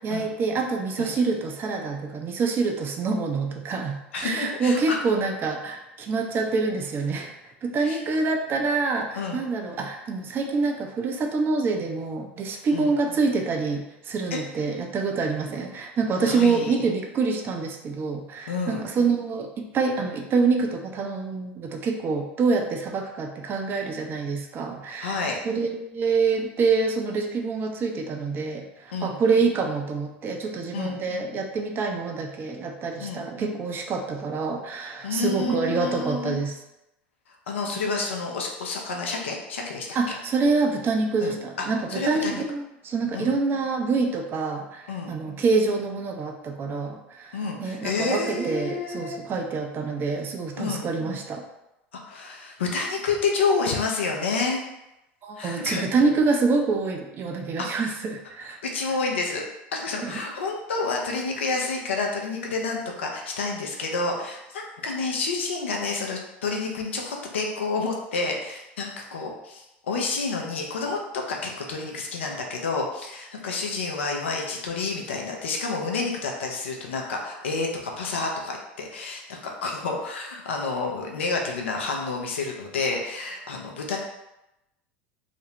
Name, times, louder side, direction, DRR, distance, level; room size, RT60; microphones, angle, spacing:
voice 1, 0.0-36.5 39.9-51.4 55.2-58.6 60.0-60.1, right 4 dB, 35° right, 3 dB, 0.4 m, -26 dB
voice 2, 4.1-5.0 7.8-8.0 9.1-9.4 12.7-12.9 14.3-14.4 16.2-16.8 18.5-18.9 25.0-25.4 28.9-29.2 30.7-31.0 33.0-33.3 35.0-36.4 37.5-40.2 41.2-42.4 43.1-43.3 44.9-45.1 47.3-49.2 50.5-50.9 51.9-54.6 55.4-56.1 57.6-57.9 58.6-59.4 59.7-84.0, left 4 dB, 85° left, 1 dB, 0.5 m, -29 dB
2.5 x 2.0 x 2.8 m, 0.91 s
hypercardioid pair, 85°, 6 cm